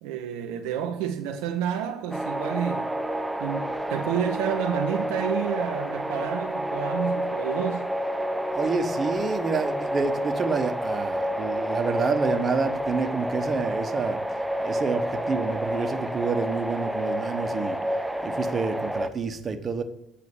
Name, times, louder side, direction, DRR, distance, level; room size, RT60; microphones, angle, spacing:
voice 1, 0.0-2.9 3.4-7.9, right 9 dB, 70° right, 0.6 m, -30 dB
sound 1, 2.1-19.1, equal, 5° right, 0.7 m, -29 dB
voice 2, 8.5-14.2 14.6-17.8 18.2-19.8, right 4 dB, 40° right, 1.0 m, -28 dB
8.5 x 5.8 x 7.1 m
figure-of-eight pair, 50°, 0 cm